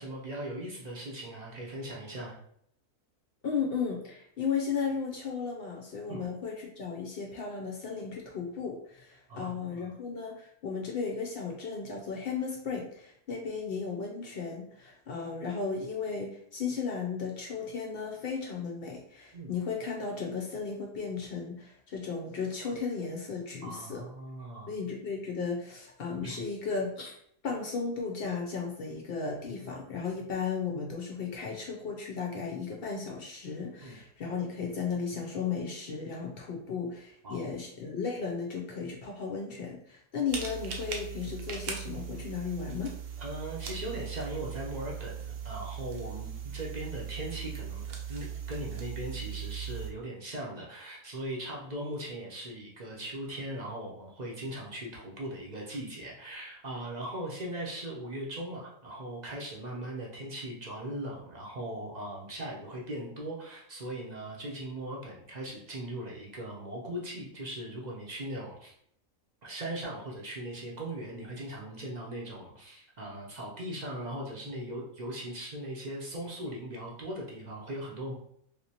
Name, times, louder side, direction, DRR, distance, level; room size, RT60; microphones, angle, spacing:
voice 1, 0.0-2.4 6.1-6.3 9.3-9.9 19.3-19.6 23.6-24.7 26.2-26.4 33.8-34.0 37.2-37.5 43.2-68.7 69.4-78.1, right 1 dB, 40° right, -3 dB, 0.7 m, -39 dB
voice 2, 3.4-24.0 24.7-27.2 27.4-42.9, left 5 dB, 60° left, 0 dB, 0.6 m, -35 dB
sound 1, 40.3-49.9, right 8 dB, 75° right, 1.0 m, -39 dB
3.5 x 2.8 x 2.8 m, 0.69 s
omnidirectional pair, 1.4 m